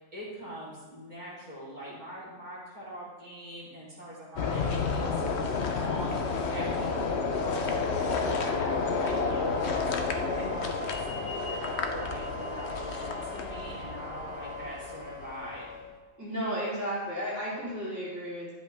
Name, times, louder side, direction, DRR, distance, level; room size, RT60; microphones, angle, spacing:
voice 1, 0.1-15.7, right 1 dB, 35° right, -9 dB, 3.7 m, -43 dB
sound 1, 4.4-15.6, left 4 dB, 65° left, 1.1 m, -31 dB
Wind instrument woodwind instrument, 7.3-15.8, right 2 dB, 70° right, 2.3 m, -44 dB
sound 2, 10.8-15.8, left 3 dB, 10° left, 2.0 m, -48 dB
voice 2, 16.2-18.5, equal, 15° right, -9 dB, 3.2 m, -33 dB
12.0 x 7.9 x 3.5 m, 1.3 s
omnidirectional pair, 1.2 m